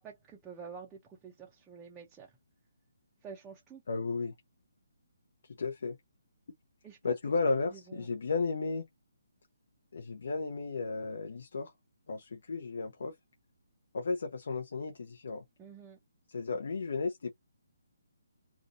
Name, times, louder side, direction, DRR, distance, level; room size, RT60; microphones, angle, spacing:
voice 1, 0.0-2.4 3.2-3.8 6.8-7.4 7.7-8.1 15.6-16.0, right 6 dB, 15° right, 0.5 m, -49 dB
voice 2, 3.9-4.3 5.4-6.0 7.0-8.8 9.9-11.7 12.1-13.1 13.9-15.4 16.3-17.3, left 4 dB, 60° left, 0.6 m, -34 dB
2.4 x 2.1 x 2.5 m
figure-of-eight pair, 140°, 0 cm